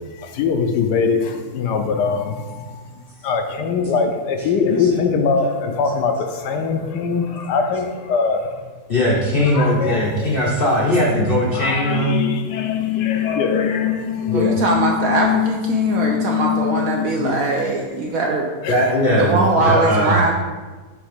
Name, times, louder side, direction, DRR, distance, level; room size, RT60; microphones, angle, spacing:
voice 1, 0.1-2.8 3.2-8.6 9.5-10.4 11.5-17.3 17.7-17.8 18.6-19.0, left 6 dB, 75° left, 5 dB, 1.1 m, -22 dB
voice 2, 8.9-12.3 14.3-14.6 17.2-17.3 18.7-20.2, equal, 50° left, -4 dB, 0.7 m, -19 dB
voice 3, 14.3-18.5 19.2-20.3, right 2 dB, 70° right, 0 dB, 0.8 m, -21 dB
7.1 x 2.8 x 5.0 m, 1.3 s
omnidirectional pair, 2.0 m